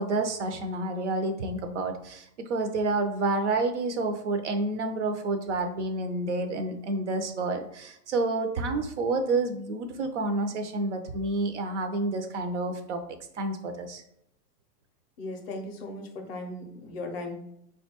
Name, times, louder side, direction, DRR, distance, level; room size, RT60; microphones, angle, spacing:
voice 1, 0.0-13.0 13.3-14.0, right 2 dB, 50° right, 6 dB, 0.5 m, -29 dB
voice 2, 15.2-17.4, left 2 dB, 40° left, 3 dB, 0.5 m, -37 dB
3.7 x 2.2 x 2.8 m, 0.76 s
hypercardioid pair, 135°, 48 cm